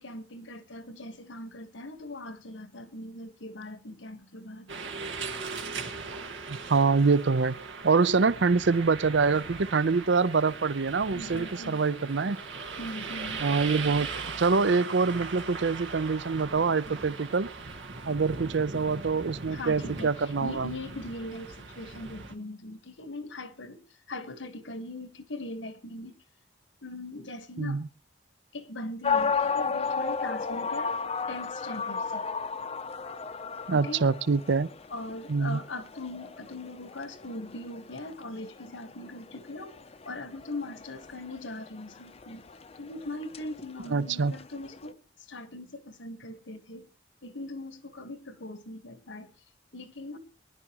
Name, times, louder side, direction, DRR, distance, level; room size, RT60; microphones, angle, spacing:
voice 1, 0.0-4.7 11.1-11.8 12.8-13.5 19.5-23.8 24.1-26.1 26.8-27.8 28.5-30.9 31.3-32.2 33.7-34.0 34.9-39.7 40.0-42.4 42.8-45.0 45.3-46.9 47.2-49.3 49.7-50.2, left 1 dB, 85° left, 1.5 m, -40 dB
sound 1, 4.7-22.3, right 4 dB, 90° right, 1.7 m, -39 dB
voice 2, 6.5-12.4 13.4-17.5 18.1-20.7 27.6-27.9 33.7-34.7 35.3-35.6 43.9-44.3, right 4 dB, 70° right, 0.6 m, -25 dB
sound 2, 29.0-44.9, left 5 dB, 35° left, 0.6 m, -34 dB
23.0 x 11.0 x 3.0 m
head